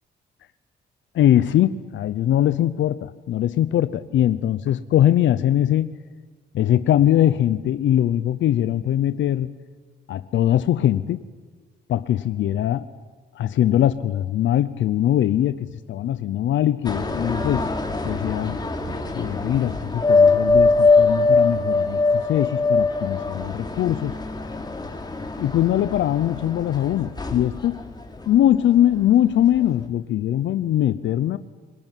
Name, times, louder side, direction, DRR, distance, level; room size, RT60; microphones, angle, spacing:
voice 1, 1.1-5.9 6.5-9.5 10.1-11.2 11.9-12.9 13.3-17.7 18.0-18.6 19.1-24.2 25.4-27.8 28.3-31.4, left 11 dB, 70° left, 14 dB, 0.8 m, -21 dB
sound 1, 16.8-29.1 29.5-29.8, left 3 dB, 20° left, 3.1 m, -22 dB
27.0 x 19.5 x 9.2 m, 1.4 s
cardioid pair, 90°, 20 cm